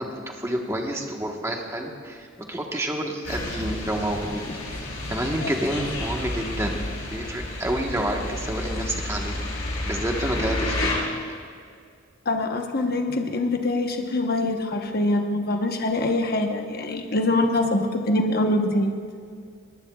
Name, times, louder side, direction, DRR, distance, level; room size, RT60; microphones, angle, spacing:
voice 1, 0.0-4.4 4.7-9.4 9.8-10.9, right 1 dB, 15° right, 1 dB, 1.3 m, -29 dB
sound 1, 3.2-10.9, left 2 dB, 80° left, 4.4 m, -31 dB
voice 2, 12.2-18.9, left 2 dB, 50° left, 3 dB, 1.1 m, -24 dB
21.5 x 18.5 x 2.4 m, 2.2 s
head